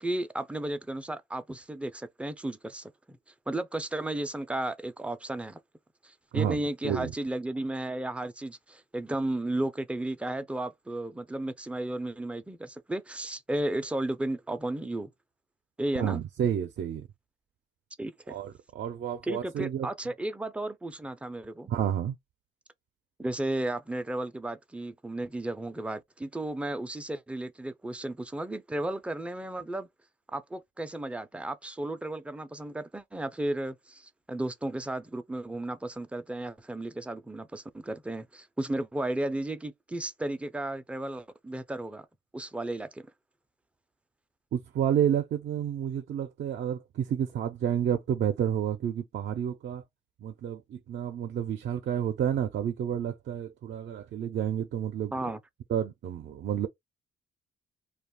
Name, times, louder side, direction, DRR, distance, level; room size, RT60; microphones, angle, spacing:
voice 1, 0.0-3.2 3.5-5.6 6.0-15.1 15.8-16.2 18.0-18.4 19.2-21.7 23.2-29.9 30.3-42.1 42.3-43.1 55.1-55.4, right 1 dB, 5° right, 0.4 m, -34 dB
voice 2, 6.3-7.1 16.0-17.1 18.3-19.9 21.7-22.2 44.5-49.8 50.2-55.1 55.7-56.7, right 9 dB, 60° right, 0.5 m, -30 dB
2.4 x 2.3 x 3.6 m
cardioid pair, 90°, 20 cm